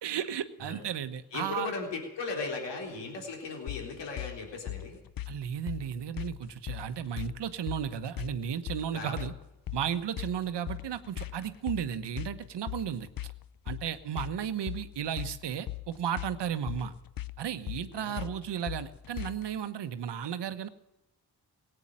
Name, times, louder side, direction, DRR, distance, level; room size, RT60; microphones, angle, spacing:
voice 1, 0.0-1.7 5.3-9.3 9.7-13.1 13.7-16.9 17.4-20.7, right 9 dB, 75° right, 11 dB, 1.2 m, -34 dB
voice 2, 1.3-5.0 8.9-9.2 17.9-18.3, left 4 dB, 80° left, 1 dB, 3.7 m, -37 dB
sound 1, 3.7-19.6, left 14 dB, 55° left, 0.8 m, -40 dB
18.0 x 9.0 x 8.9 m, 0.92 s
supercardioid pair, 45°, 42 cm